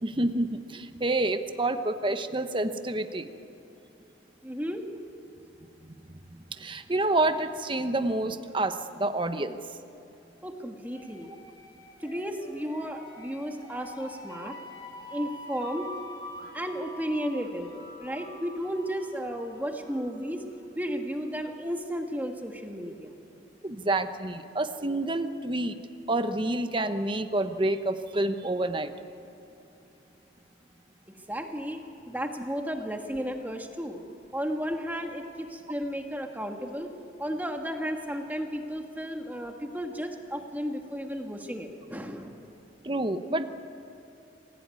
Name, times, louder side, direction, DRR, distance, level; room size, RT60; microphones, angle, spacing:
voice 1, 0.0-3.3 6.5-9.6 23.6-25.8 26.1-28.9 42.8-43.5, right 2 dB, 25° right, 9 dB, 0.9 m, -28 dB
voice 2, 4.4-4.9 10.4-11.3 12.0-14.6 15.1-15.9 16.5-17.7 18.0-20.4 20.7-23.1 31.3-31.8 32.1-34.0 34.3-36.9 37.2-42.4, equal, 10° right, 4 dB, 1.6 m, -33 dB
sound 1, 10.8-20.5, left 1 dB, 25° left, 3.1 m, -46 dB
25.5 x 16.5 x 9.6 m, 2.6 s
head